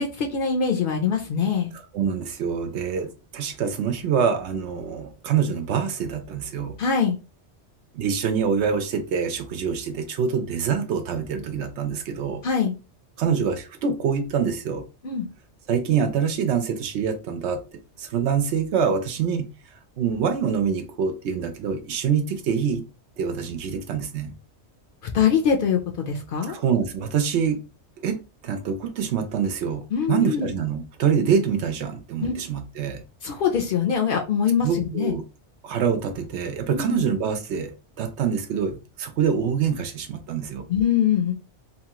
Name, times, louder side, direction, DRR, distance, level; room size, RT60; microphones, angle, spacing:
voice 1, 0.0-1.7 6.8-7.2 12.4-12.7 15.0-15.3 25.1-26.6 29.9-30.4 32.2-32.3 33.2-35.1 36.7-37.0 40.7-41.3, left 7 dB, 55° left, 0.7 m, -23 dB
voice 2, 1.9-6.8 7.9-12.4 13.2-14.9 15.7-17.6 18.0-19.5 20.0-22.8 23.2-24.3 26.5-27.6 28.0-33.0 34.6-35.2 35.6-40.7, right 7 dB, 75° right, 0.9 m, -25 dB
2.9 x 2.3 x 2.8 m
omnidirectional pair, 1.2 m